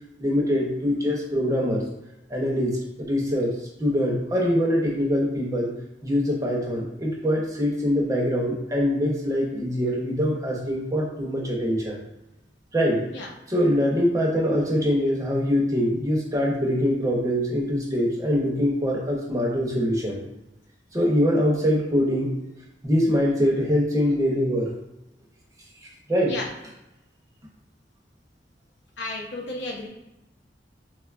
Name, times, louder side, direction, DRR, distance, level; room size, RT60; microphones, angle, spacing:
voice 1, 0.2-1.8 2.3-5.7 6.0-12.0 12.7-13.0 13.5-20.2 20.9-22.4 22.8-24.7 26.1-26.3, equal, 20° right, -2 dB, 0.6 m, -23 dB
voice 2, 29.0-29.9, left 2 dB, 80° left, 0 dB, 0.6 m, -32 dB
3.6 x 2.2 x 2.4 m, 0.93 s
head